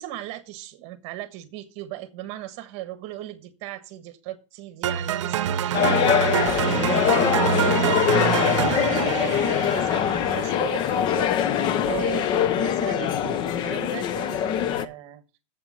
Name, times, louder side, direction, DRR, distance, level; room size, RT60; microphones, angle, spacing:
voice 1, 0.0-8.1 8.4-15.2, right 14 dB, 40° right, 1.3 m, -37 dB
sound 1, 4.8-10.9, right 10 dB, 70° right, 0.8 m, -26 dB
sound 2, 5.7-14.9, left 9 dB, 30° left, 0.6 m, -23 dB
7.6 x 5.9 x 6.7 m
supercardioid pair, 145°, 16 cm